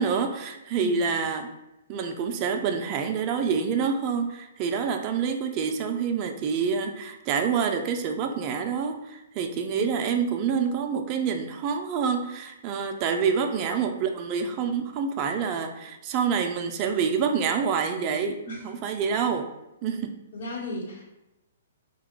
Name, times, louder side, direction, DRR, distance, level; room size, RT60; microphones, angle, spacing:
voice 1, 0.0-1.5 1.9-19.4 19.8-20.1, right 6 dB, 35° right, 5 dB, 0.3 m, -27 dB
voice 2, 20.3-21.0, left 2 dB, 65° left, -2 dB, 1.1 m, -35 dB
2.9 x 2.2 x 3.6 m, 0.91 s
hypercardioid pair, 130°, 0 cm